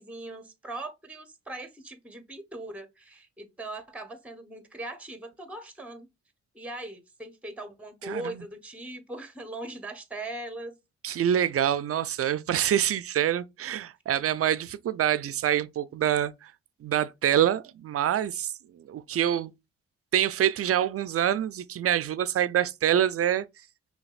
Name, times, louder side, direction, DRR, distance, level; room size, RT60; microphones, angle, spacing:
voice 1, 0.0-6.1 6.5-10.8, right 2 dB, 5° right, 0.8 m, -40 dB
voice 2, 8.1-8.4 11.0-16.5 16.8-19.5 20.1-23.5, right 10 dB, 45° right, 0.5 m, -26 dB
5.6 x 2.3 x 2.4 m
hypercardioid pair, 40°, 33 cm